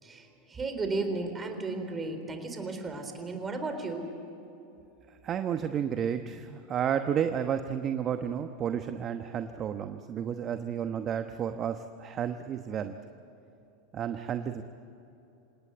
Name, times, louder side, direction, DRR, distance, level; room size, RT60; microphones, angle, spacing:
voice 1, 0.0-4.1, right 3 dB, 20° right, 6 dB, 4.0 m, -34 dB
voice 2, 5.2-13.0 13.9-14.6, right 8 dB, 35° right, 8 dB, 1.0 m, -31 dB
27.5 x 18.5 x 8.0 m, 3.0 s
hypercardioid pair, 95°, 0 cm